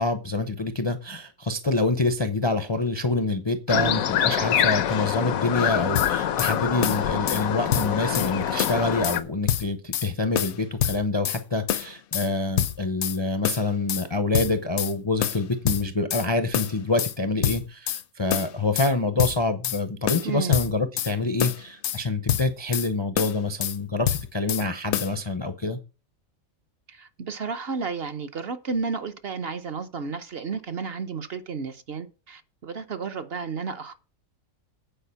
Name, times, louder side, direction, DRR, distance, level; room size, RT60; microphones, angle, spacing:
voice 1, 0.0-25.8, left 2 dB, 30° left, 0.5 m, -26 dB
sound 1, 3.7-9.2, left 10 dB, 85° left, 1.1 m, -25 dB
sound 2, 6.0-6.5 6.8-7.4 7.7-8.3 8.6-9.2 9.5-10.1 10.4-11.4 11.7-12.3 12.6-13.2 13.4-14.1 14.3-14.9 15.2-16.3 16.5-17.1 17.4-18.0 18.3-18.9 19.2-19.8 20.1-21.1 21.4-22.0 22.3-22.9 23.2-23.8 24.1-24.7 24.9-25.1, left 10 dB, 65° left, 0.8 m, -27 dB
voice 2, 20.2-20.6 26.9-33.9, right 5 dB, 50° right, 0.9 m, -32 dB
9.0 x 4.9 x 6.9 m
omnidirectional pair, 1.5 m